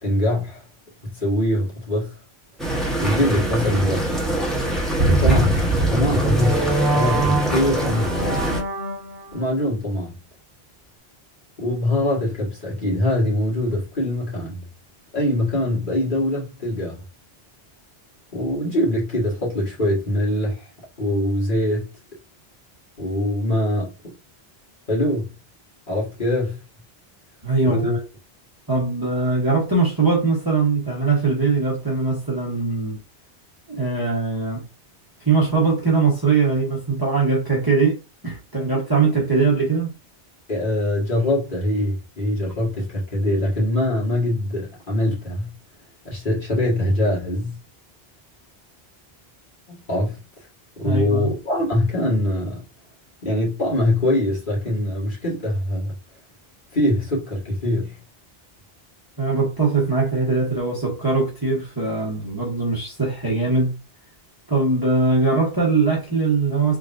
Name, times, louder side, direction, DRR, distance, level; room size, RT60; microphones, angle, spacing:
voice 1, 0.0-0.6 1.0-2.2 3.0-4.2 5.1-5.6 5.9-8.4 9.3-10.1 11.6-14.6 15.1-17.0 18.3-20.7 21.0-21.9 23.0-24.1 24.9-25.3 25.9-26.6 27.6-28.0 40.5-45.5 46.1-47.6 49.7-50.2 50.8-52.6 53.2-55.9 56.7-58.0, left 1 dB, 55° left, 1.9 m, -23 dB
sound 1, 2.6-8.6, right 1 dB, ahead, 1.0 m, -24 dB
sound 2, 5.0-9.4, right 2 dB, 75° right, 1.4 m, -23 dB
voice 2, 27.4-27.9 28.7-33.0 33.7-34.6 35.2-38.0 38.2-39.9 50.8-51.3 59.2-63.8 64.5-66.8, right 4 dB, 20° right, 1.2 m, -21 dB
3.5 x 3.3 x 2.6 m
omnidirectional pair, 1.0 m